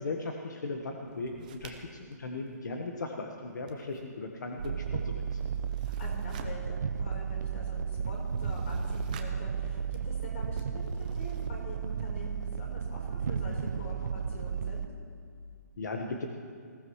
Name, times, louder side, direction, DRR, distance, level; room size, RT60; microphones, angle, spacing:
voice 1, 0.0-5.4 15.8-16.3, left 3 dB, 80° left, 3 dB, 1.4 m, -37 dB
sound 1, 1.1-3.3 3.5-11.5, right 5 dB, 25° right, 0.9 m, -50 dB
sound 2, 4.6-14.9, right 6 dB, 75° right, 0.6 m, -34 dB
voice 2, 5.8-14.8, left 2 dB, 45° left, -1 dB, 4.1 m, -45 dB
20.0 x 16.0 x 3.2 m, 2.4 s
hypercardioid pair, 170°, 9 cm